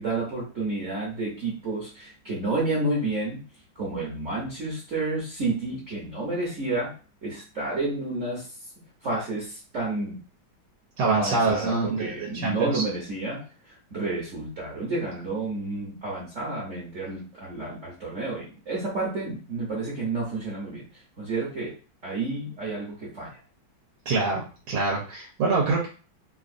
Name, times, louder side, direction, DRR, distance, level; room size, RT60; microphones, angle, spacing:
voice 1, 0.0-3.4 3.7-6.9 7.2-8.5 9.0-10.2 11.1-13.4 13.7-20.8 21.2-21.7 22.0-23.3, right 2 dB, 50° right, -5 dB, 1.0 m, -30 dB
voice 2, 11.0-12.8 24.0-25.9, right 3 dB, 80° right, -3 dB, 1.6 m, -25 dB
3.6 x 2.5 x 2.5 m, 0.36 s
omnidirectional pair, 2.3 m